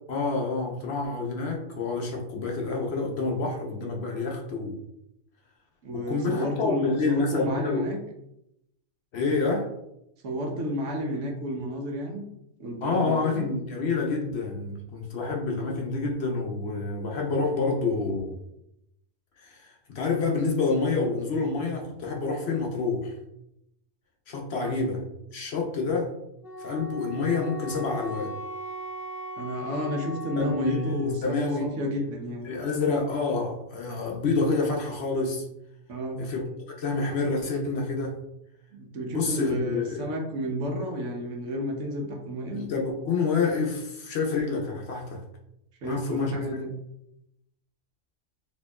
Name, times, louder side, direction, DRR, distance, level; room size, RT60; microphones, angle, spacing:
voice 1, 0.1-4.8 5.9-7.9 9.1-9.7 12.8-18.4 19.4-23.2 24.3-25.0 25.3-26.1 26.6-28.3 30.4-31.7 32.4-35.4 36.2-38.2 39.1-40.0 42.5-45.2 45.8-46.4, left 3 dB, 60° left, 0 dB, 0.8 m, -28 dB
voice 2, 5.8-8.0 10.2-12.2 12.6-13.4 24.6-24.7 29.4-32.5 35.9-36.2 38.7-42.7 45.8-46.7, equal, 70° right, 1 dB, 1.0 m, -31 dB
Wind instrument woodwind instrument, 26.4-31.2, equal, 5° right, 0.6 m, -38 dB
4.3 x 2.8 x 2.2 m, 0.81 s
omnidirectional pair, 1.4 m